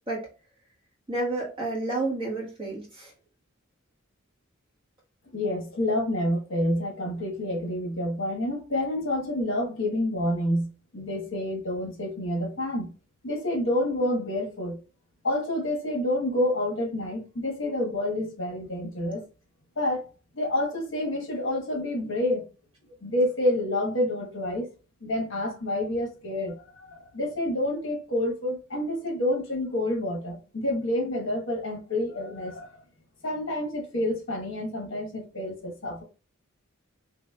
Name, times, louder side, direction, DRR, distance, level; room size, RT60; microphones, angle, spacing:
voice 1, 1.1-3.1, right 2 dB, 25° right, 1.4 m, -30 dB
voice 2, 5.3-10.7 10.9-12.9 13.2-14.8 15.2-19.2 19.8-22.5 23.0-24.7 25.0-32.8 33.2-36.0, left 1 dB, 60° left, 1.2 m, -28 dB
4.1 x 3.0 x 2.3 m
head